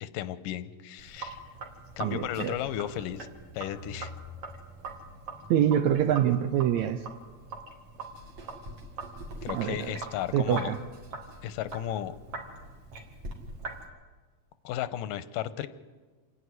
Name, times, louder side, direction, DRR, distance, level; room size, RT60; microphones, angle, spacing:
voice 1, 0.0-1.4 2.0-3.3 3.5-4.1 9.4-10.7 11.4-12.2 14.6-15.7, left 12 dB, 90° left, 13 dB, 2.4 m, -34 dB
Sink (filling or washing), 1.0-13.9, right 3 dB, 50° right, 2.9 m, -42 dB
voice 2, 2.0-2.6 5.5-7.0 9.5-9.9 10.3-10.8, right 10 dB, 75° right, 10 dB, 1.9 m, -25 dB
27.0 x 11.0 x 9.7 m, 1.4 s
omnidirectional pair, 3.8 m